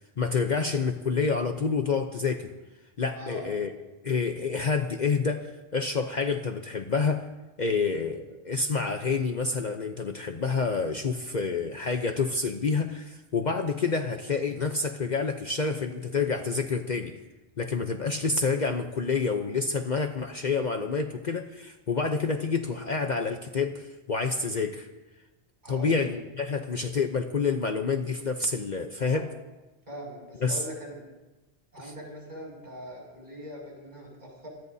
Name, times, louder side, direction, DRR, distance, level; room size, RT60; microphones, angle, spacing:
voice 1, 0.2-2.5 3.0-3.7 4.0-5.5 5.7-7.2 7.6-17.2 17.6-24.9 25.7-29.3 30.4-30.6 31.8-31.9, left 4 dB, 45° left, 5 dB, 0.9 m, -28 dB
voice 2, 25.6-26.0 29.0-29.3 29.9-31.0 31.7-34.5, equal, 40° right, -2 dB, 6.7 m, -41 dB
25.0 x 19.5 x 2.8 m, 1.1 s
omnidirectional pair, 1.1 m